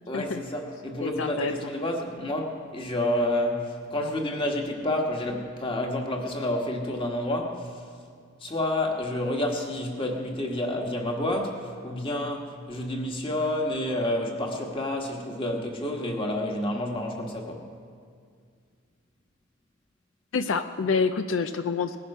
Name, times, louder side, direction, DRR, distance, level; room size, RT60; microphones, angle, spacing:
voice 1, 0.1-7.8 8.4-17.7, left 1 dB, 25° left, 2 dB, 1.6 m, -29 dB
voice 2, 1.0-1.5 20.3-22.0, left 5 dB, 75° left, 9 dB, 0.5 m, -27 dB
19.5 x 10.5 x 5.5 m, 2.1 s
head